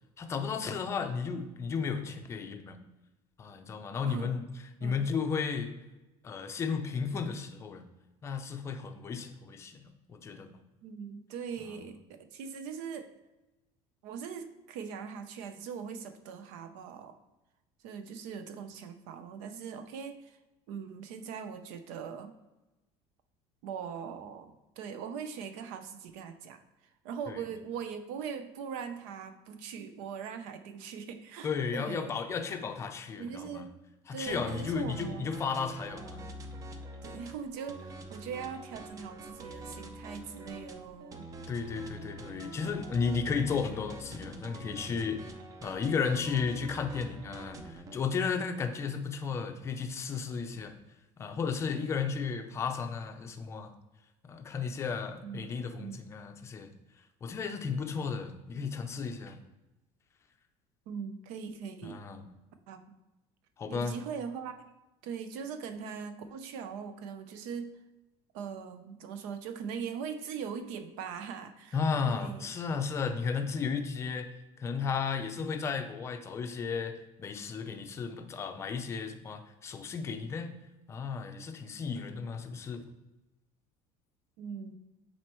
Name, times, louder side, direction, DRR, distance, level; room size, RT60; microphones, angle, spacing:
voice 1, 0.2-2.8 3.4-4.4 4.8-5.7 6.2-7.8 8.2-10.5 27.3-27.4 31.4-33.7 34.1-36.3 41.5-45.2 45.6-50.7 51.2-53.7 54.2-56.7 57.2-59.4 61.8-62.3 63.6-63.9 71.7-74.3 74.6-80.5 80.9-82.8, left 5 dB, 20° left, 6 dB, 0.5 m, -34 dB
voice 2, 4.0-4.3 4.8-5.1 10.8-13.1 14.0-17.2 17.8-20.4 20.7-22.3 23.6-26.6 27.0-32.1 33.2-33.7 34.1-35.3 37.0-41.3 55.2-55.5 55.8-56.1 60.9-62.0 62.7-62.9 63.7-64.5 65.0-67.8 68.3-71.8 72.0-72.5 84.4-84.8, right 6 dB, 75° right, 9 dB, 0.7 m, -41 dB
sound 1, 34.3-48.0, right 1 dB, 25° right, 0.5 m, -45 dB
7.7 x 4.2 x 3.1 m, 1.0 s
cardioid pair, 165°, 13 cm